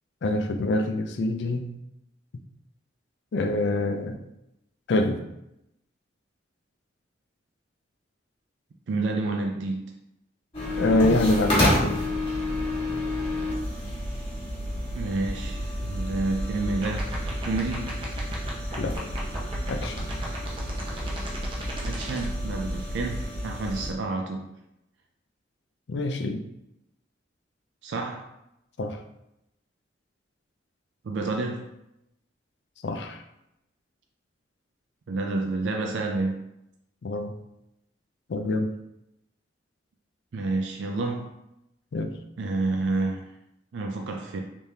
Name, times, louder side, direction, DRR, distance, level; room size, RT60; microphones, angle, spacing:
voice 1, 0.2-1.7 3.3-4.2 4.9-5.2 10.8-12.0 18.8-19.0 19.7-20.1 25.9-26.4 28.8-29.0 32.8-33.2 37.0-37.3 38.3-38.7 41.9-42.1, left 2 dB, 65° left, 7 dB, 0.4 m, -25 dB
voice 2, 8.9-9.9 14.9-17.2 17.5-18.0 21.8-24.5 27.8-28.3 31.0-31.7 35.1-36.5 40.3-41.3 42.4-43.3 43.7-44.4, right 3 dB, 70° right, 2 dB, 0.4 m, -29 dB
sound 1, 10.5-23.9, left 1 dB, 30° left, 1.2 m, -30 dB
sound 2, 16.7-22.2, right 2 dB, 30° right, 0.7 m, -37 dB
3.4 x 3.3 x 2.7 m, 0.84 s
head